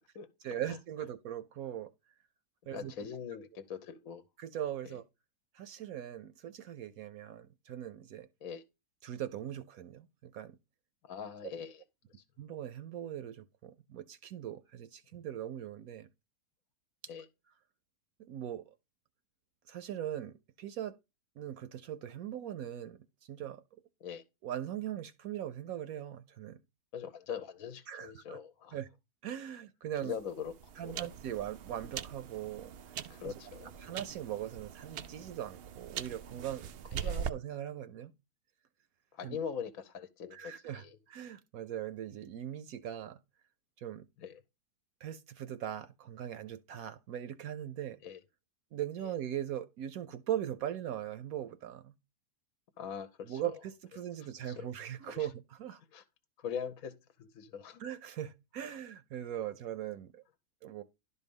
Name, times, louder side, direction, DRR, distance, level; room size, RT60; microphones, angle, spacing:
voice 1, 0.4-1.9 2.7-2.9 4.4-5.0 5.5-8.3 9.0-10.6 12.4-16.1 18.2-18.6 19.7-21.0 21.4-23.6 24.4-26.6 27.9-28.4 28.7-28.9 29.2-30.1 30.8-32.7 33.2-33.3 33.8-38.1 39.2-39.4 40.3-43.2 43.8-44.0 45.0-48.0 48.7-51.9 53.2-55.8 57.8-60.2 60.6-60.8, right 11 dB, 70° right, 1.0 m, -40 dB
voice 2, 2.6-4.2 4.8-5.0 8.4-8.6 11.0-11.8 17.1-17.3 24.0-24.2 26.9-28.8 30.0-31.1 33.1-33.7 37.0-37.2 39.1-41.0 44.2-44.4 48.0-48.2 52.8-53.6 54.4-54.7 55.1-55.3 55.9-56.0 56.4-57.8, left 7 dB, 65° left, 1.1 m, -42 dB
sound 1, 29.9-37.3, right 7 dB, 85° right, 0.5 m, -42 dB
11.5 x 4.2 x 5.3 m
omnidirectional pair, 1.7 m